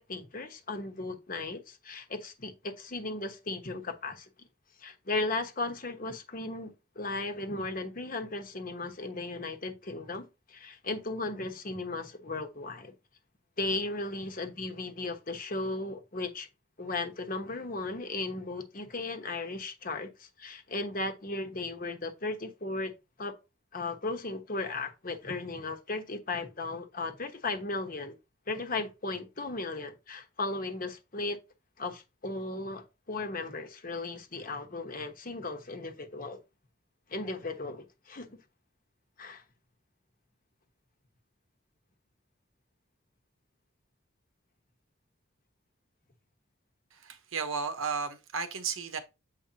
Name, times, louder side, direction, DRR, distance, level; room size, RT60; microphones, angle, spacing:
voice 1, 0.0-4.3 4.8-12.9 13.6-16.5 16.8-22.9 23.2-23.3 23.7-28.2 28.5-31.4 31.8-36.4 37.1-38.4 39.2-39.4, left 2 dB, 45° left, 1.1 m, -36 dB
voice 2, 46.9-49.0, right 5 dB, 85° right, 1.0 m, -34 dB
7.5 x 4.8 x 2.8 m
head